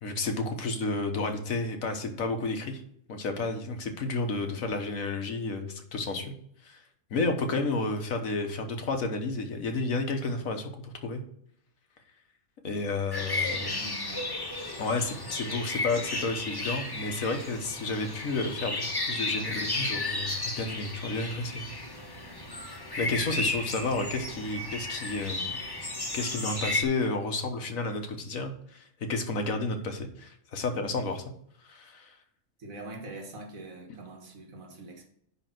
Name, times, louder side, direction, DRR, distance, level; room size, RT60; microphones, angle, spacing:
voice 1, 0.0-2.8 3.1-6.3 6.6-6.8 7.1-11.2 12.6-13.7 14.8-21.6 22.6-25.6 26.1-31.2 31.7-32.1, left 3 dB, 85° left, 6 dB, 1.6 m, -31 dB
sound 1, 13.1-26.8, left 2 dB, 20° left, 1.1 m, -34 dB
voice 2, 13.5-14.3 32.6-35.0, right 2 dB, 90° right, 1 dB, 2.0 m, -43 dB
10.0 x 3.5 x 5.9 m, 0.70 s
omnidirectional pair, 1.4 m